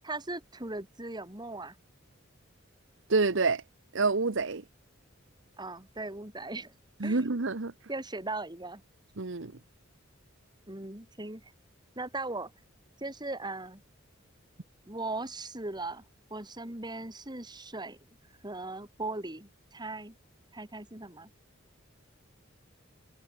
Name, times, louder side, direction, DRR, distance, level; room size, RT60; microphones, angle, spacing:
voice 1, 0.0-1.8 5.6-6.7 7.0-7.3 7.9-8.8 10.7-11.5 12.0-12.5 13.0-13.8 14.9-16.0 16.3-18.0 18.4-20.2 20.5-21.3, right 2 dB, 20° right, 3.8 m, -38 dB
voice 2, 3.1-3.6 3.9-4.6 7.0-7.7 9.2-9.5, right 3 dB, 65° right, 1.1 m, -27 dB
head